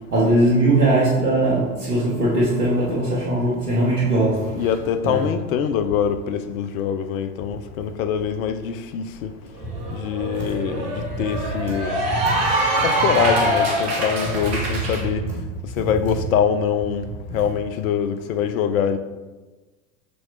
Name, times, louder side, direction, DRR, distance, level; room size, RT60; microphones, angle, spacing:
voice 1, 0.1-4.7 5.0-5.2 10.3-10.4, right 1 dB, 85° right, -7 dB, 1.7 m, -20 dB
voice 2, 4.5-9.3 9.9-12.1 12.8-15.2 15.8-17.1 17.3-19.0, left 8 dB, 60° left, 10 dB, 0.8 m, -24 dB
Cheering / Applause, 9.2-9.3 9.6-15.0, right 1 dB, 50° right, 2.2 m, -24 dB
6.5 x 4.5 x 4.2 m, 1.2 s
hypercardioid pair, 85°, 45 cm